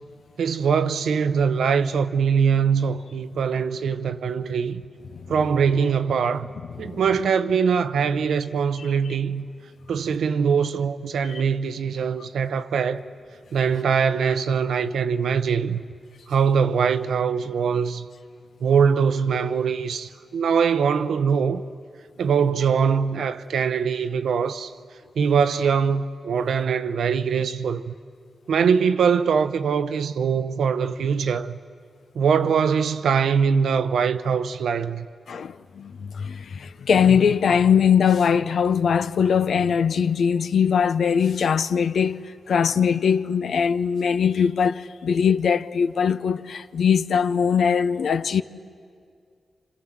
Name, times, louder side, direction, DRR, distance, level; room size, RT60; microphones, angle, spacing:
voice 1, 0.4-4.8 5.3-6.5 6.8-9.5 9.9-13.0 13.5-15.8 16.3-18.1 18.6-21.6 22.2-24.7 25.2-27.9 28.5-31.6 32.1-35.1, right 6 dB, 90° right, 0.8 m, -22 dB
voice 2, 35.3-48.4, left 7 dB, 80° left, 0.7 m, -21 dB
29.0 x 26.5 x 7.5 m
cardioid pair, 75°, 0 cm